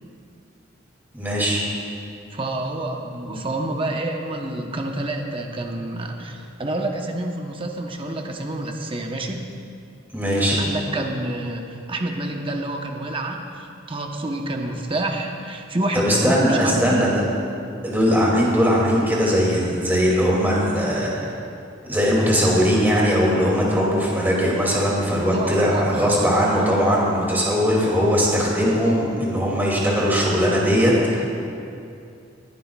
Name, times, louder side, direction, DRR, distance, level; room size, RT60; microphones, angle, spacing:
voice 1, 1.1-1.6 10.1-10.6 15.9-17.2 17.8-21.3 21.9-31.2, equal, 10° right, -5 dB, 2.5 m, -20 dB
voice 2, 2.3-9.5 10.6-17.0 25.3-26.1, right 1 dB, 25° right, 2 dB, 0.9 m, -28 dB
20.5 x 11.0 x 2.4 m, 2.6 s
head